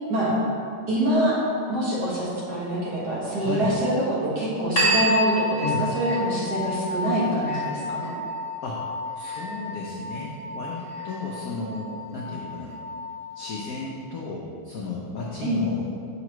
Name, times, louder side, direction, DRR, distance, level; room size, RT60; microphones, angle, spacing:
voice 1, 0.9-1.4 1.7-8.1 15.4-15.6, right 1 dB, 50° right, -7 dB, 1.8 m, -25 dB
voice 2, 3.4-3.7 5.6-5.9 8.6-8.8 9.2-12.7 13.3-15.9, left 2 dB, 80° left, -3 dB, 0.7 m, -33 dB
sound 1, 4.8-13.8, left 1 dB, 30° left, 1.7 m, -29 dB
6.8 x 5.8 x 3.0 m, 2.5 s
omnidirectional pair, 2.4 m